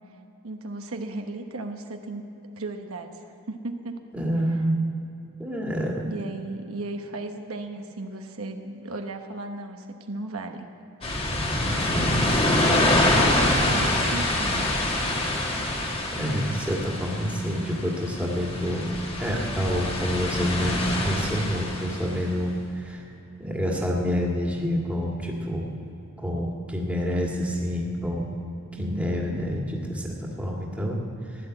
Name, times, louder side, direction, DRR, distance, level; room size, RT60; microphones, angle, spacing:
voice 1, 0.4-2.2 2.6-4.0 6.0-10.7 12.5-14.6 28.8-29.4, right 2 dB, 80° right, 4 dB, 1.1 m, -36 dB
voice 2, 4.1-4.7 5.4-6.1 11.8-12.9 15.5-15.7 16.1-23.0 23.4-25.7 26.2-28.3 28.7-31.5, equal, 5° right, -2 dB, 1.9 m, -28 dB
sound 1, 11.0-22.2, left 1 dB, 25° left, 1.6 m, -25 dB
16.0 x 11.5 x 7.8 m, 2.9 s
head